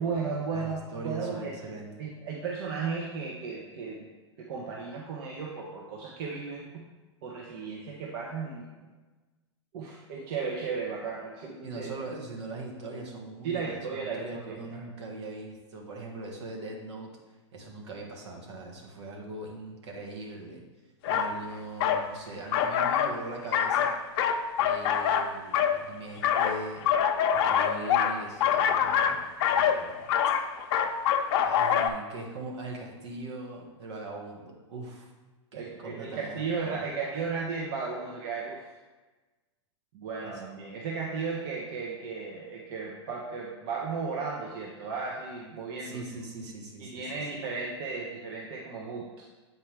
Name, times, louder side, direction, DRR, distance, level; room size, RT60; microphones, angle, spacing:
voice 1, 0.0-1.5 2.0-4.1 4.4-6.8 7.2-8.7 9.7-11.9 13.4-14.8 35.5-38.6 39.9-46.0 46.8-49.1, right 5 dB, 60° right, -2 dB, 0.9 m, -35 dB
voice 2, 0.5-1.9 11.6-17.1 17.5-20.6 21.1-23.9 24.6-26.9 27.3-29.2 29.5-30.1 31.4-35.1 35.5-36.8 40.3-40.4 45.8-47.1, right 2 dB, 75° right, 0 dB, 1.4 m, -41 dB
sound 1, 21.0-21.3 21.8-22.1 22.5-23.2 23.5-25.8 26.2-31.9, left 8 dB, 55° left, 0.5 m, -25 dB
7.5 x 4.4 x 3.4 m, 1.2 s
hypercardioid pair, 110°, 15 cm